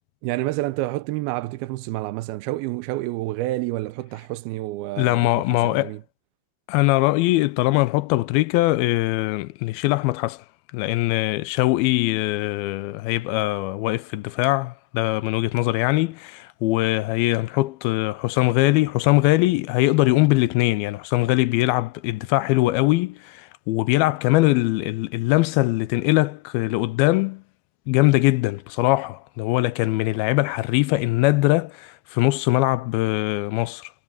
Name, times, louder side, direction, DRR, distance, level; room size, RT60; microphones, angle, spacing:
voice 1, 0.2-6.0, right 18 dB, 90° right, 2.6 m, -29 dB
voice 2, 5.0-5.9 6.7-10.4 10.7-27.4 27.9-33.9, left 19 dB, 90° left, 2.5 m, -21 dB
omnidirectional pair, 4.3 m